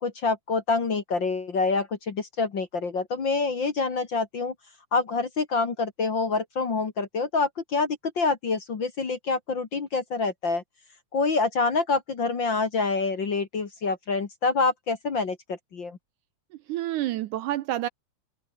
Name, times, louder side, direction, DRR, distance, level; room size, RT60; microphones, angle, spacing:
voice 1, 0.0-4.5 4.9-10.6 11.1-16.0, left 4 dB, 40° left, 2.2 m, -26 dB
voice 2, 16.5-17.9, right 14 dB, 75° right, 2.0 m, -29 dB
open air
omnidirectional pair, 4.0 m